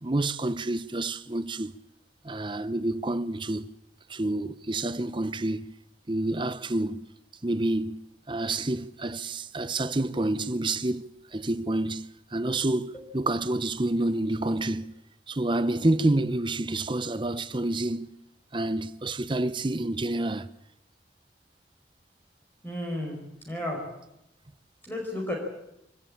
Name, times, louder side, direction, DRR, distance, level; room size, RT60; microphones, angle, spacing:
voice 1, 0.0-1.7 2.2-3.8 4.1-5.7 6.1-7.1 7.4-14.9 15.3-18.1 18.5-20.5, right 2 dB, 25° right, 0.8 m, -28 dB
voice 2, 22.6-23.2 23.4-23.8 24.9-25.3, left 1 dB, 10° left, 5.0 m, -32 dB
25.0 x 18.5 x 8.8 m
head